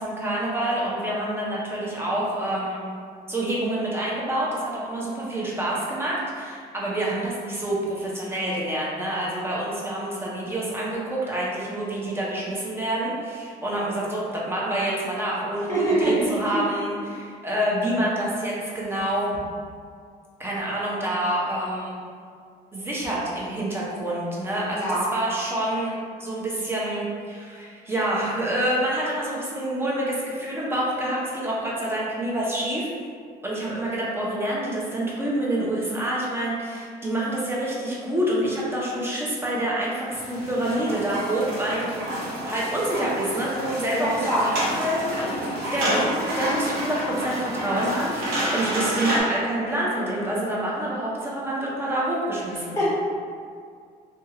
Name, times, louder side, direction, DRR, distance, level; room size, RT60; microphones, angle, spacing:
voice 1, 0.0-2.8 3.3-19.3 20.4-22.0 22.7-32.9 33.4-42.0 42.5-52.7, right 1 dB, 15° right, -5 dB, 0.6 m, -27 dB
voice 2, 15.7-16.6 24.7-25.0 43.9-44.5 52.7-52.9, right 1 dB, 15° left, -8 dB, 1.2 m, -24 dB
sound 1, 40.1-49.2, equal, 80° right, 0.8 m, -29 dB
2.7 x 2.3 x 2.8 m, 2.1 s
cardioid pair, 110°, 17 cm